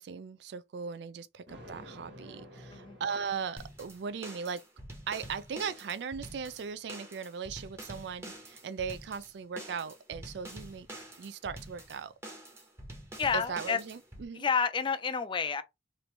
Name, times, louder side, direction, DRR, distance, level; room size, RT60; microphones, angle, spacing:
voice 1, 0.0-4.6 5.1-10.9 11.2-12.1 13.3-14.4, right 6 dB, 70° right, 0.4 m, -38 dB
Thunder, 1.5-4.0, left 1 dB, 90° right, 1.4 m, -51 dB
sound 1, 3.6-14.2, right 1 dB, 15° right, 0.8 m, -47 dB
voice 2, 13.2-13.8 14.3-15.6, left 6 dB, 30° left, 0.4 m, -30 dB
3.1 x 2.5 x 3.2 m
head